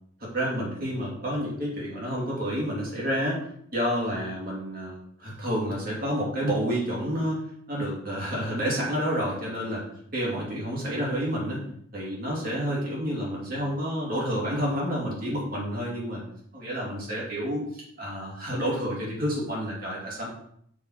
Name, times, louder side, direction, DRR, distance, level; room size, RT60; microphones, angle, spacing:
voice 1, 0.2-3.4 3.7-7.4 7.7-9.8 10.1-11.6 11.9-16.2 16.5-17.6 18.0-20.3, equal, 40° right, -4 dB, 2.9 m, -29 dB
6.3 x 5.7 x 4.4 m, 0.67 s
head